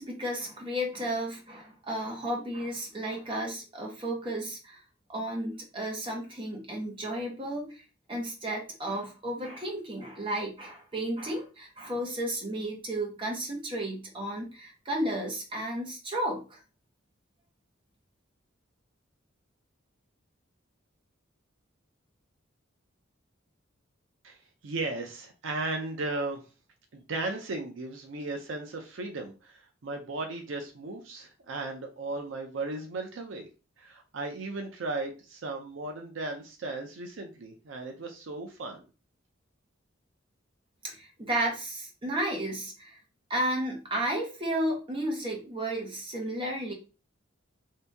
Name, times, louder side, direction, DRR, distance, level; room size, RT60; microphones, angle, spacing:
voice 1, 0.0-4.8 5.1-7.8 8.1-16.6 40.8-43.0 43.3-46.7, right 1 dB, 25° right, 0 dB, 1.0 m, -33 dB
voice 2, 24.6-26.4 26.9-33.5 33.8-38.8, right 2 dB, 70° right, 3 dB, 0.5 m, -36 dB
2.7 x 2.6 x 3.4 m, 0.33 s
head